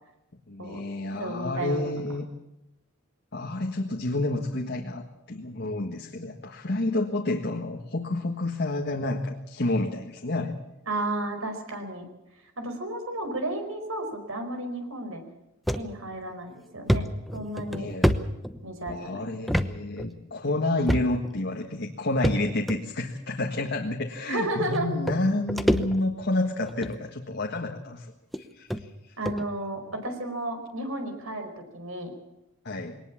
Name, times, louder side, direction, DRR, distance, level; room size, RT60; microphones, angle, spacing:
voice 1, 0.5-2.3 3.3-10.5 17.7-18.2 18.9-28.1 28.4-29.2 32.6-33.0, left 2 dB, 50° left, 2 dB, 1.7 m, -29 dB
voice 2, 1.1-2.0 10.9-12.1 12.6-15.2 15.7-17.0 17.3-17.9 18.6-19.2 24.3-24.9 29.2-32.1, right 1 dB, 70° right, 6 dB, 4.9 m, -33 dB
sound 1, 15.7-15.9 16.3-16.4 16.9-18.9 19.5-19.7 20.0-20.1 20.9-21.3 22.2-22.8 23.7-23.8 24.7-24.8 25.1-26.3 26.7-27.0 27.7-27.8 28.3-28.4 28.7-28.8 29.2-29.4, equal, ahead, 0.9 m, -26 dB
21.5 x 19.0 x 7.3 m, 0.93 s
head